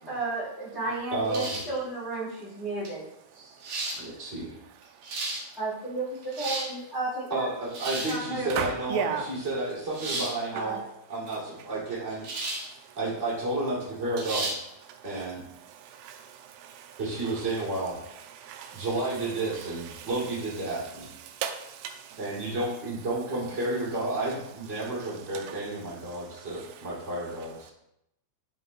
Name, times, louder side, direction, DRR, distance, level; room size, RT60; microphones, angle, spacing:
voice 1, 0.1-3.0 5.6-7.5 8.0-8.7 10.5-10.8, right 2 dB, 25° left, -8 dB, 1.5 m, -33 dB
voice 2, 1.1-1.6 3.3-3.6 4.0-4.5 7.3-9.0 9.3-10.8 11.1-12.3 13.0-14.5 15.0-15.4 17.0-18.0 18.7-21.1 22.2-27.7, right 2 dB, 20° right, -7 dB, 2.0 m, -31 dB
sound 1, 1.3-1.8 2.8-2.9 3.6-4.0 4.8-5.4 6.2-6.7 7.7-8.2 9.9-10.3 12.2-12.7 13.1-13.2 14.2-14.6, right 2 dB, 55° right, 2.3 m, -33 dB
voice 3, 3.4-4.3 4.6-5.6 8.5-9.3 10.6-10.7 12.6-13.0 14.9-18.9 19.2-21.0 21.4-22.6 24.7-27.1 27.6-27.7, right 7 dB, 90° right, 5 dB, 3.1 m, -39 dB
12.0 x 5.4 x 2.3 m, 0.81 s
omnidirectional pair, 5.6 m